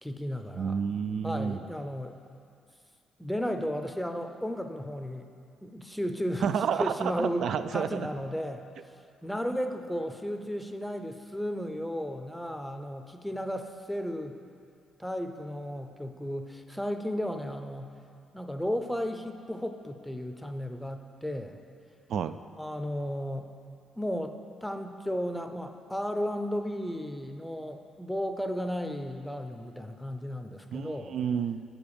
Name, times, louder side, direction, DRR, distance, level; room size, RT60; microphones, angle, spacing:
voice 1, 0.0-0.8 1.2-2.2 3.2-5.3 5.6-6.5 6.8-8.6 9.2-14.4 15.0-17.9 18.3-21.6 22.6-23.5 24.0-31.2, equal, 5° left, 6 dB, 0.6 m, -34 dB
voice 2, 0.6-1.6 6.4-8.1 22.1-22.3 30.7-31.6, right 7 dB, 65° right, 11 dB, 0.3 m, -30 dB
7.6 x 4.9 x 7.0 m, 2.4 s
cardioid pair, 90°, 0 cm